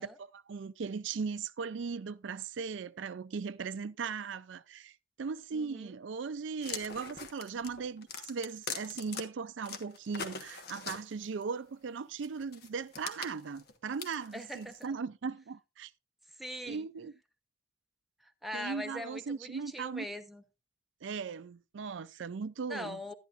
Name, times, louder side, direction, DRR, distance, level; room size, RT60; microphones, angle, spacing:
voice 1, 0.0-15.9 16.7-17.1 18.5-20.1 21.0-23.0, right 5 dB, 65° right, 0.4 m, -38 dB
voice 2, 5.5-5.9 14.3-14.9 16.4-16.9 18.2-20.4 22.7-23.1, equal, ahead, 0.8 m, -42 dB
sound 1, 6.6-9.2 9.6-11.4 12.2-14.9, left 5 dB, 55° left, 1.3 m, -42 dB
11.5 x 11.0 x 2.5 m
head